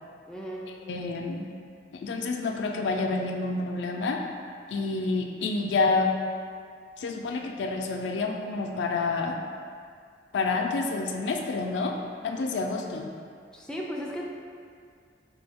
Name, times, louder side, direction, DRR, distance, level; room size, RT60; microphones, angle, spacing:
voice 1, 0.3-0.7 13.5-14.2, equal, 5° left, -3 dB, 0.3 m, -35 dB
voice 2, 0.9-1.4 1.9-4.2 4.7-6.1 7.0-9.4 10.3-12.0 12.2-13.1, left 3 dB, 80° left, 3 dB, 0.3 m, -28 dB
4.3 x 2.2 x 3.4 m, 2.2 s
head